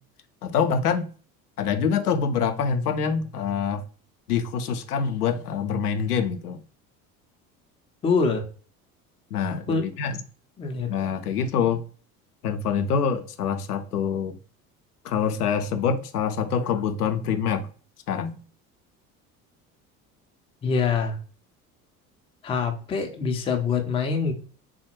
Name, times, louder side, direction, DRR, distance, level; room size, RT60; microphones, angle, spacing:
voice 1, 0.4-1.1 1.6-3.8 4.3-6.6 9.3-10.2 10.9-11.8 12.4-14.3 15.0-17.7 18.1-18.4, left 6 dB, 80° left, 0.5 m, -25 dB
voice 2, 8.0-8.4 9.7-9.9 10.6-10.9 20.6-21.2 22.4-24.3, left 5 dB, 15° left, 0.4 m, -24 dB
3.5 x 2.1 x 2.9 m
figure-of-eight pair, 65°, 45 cm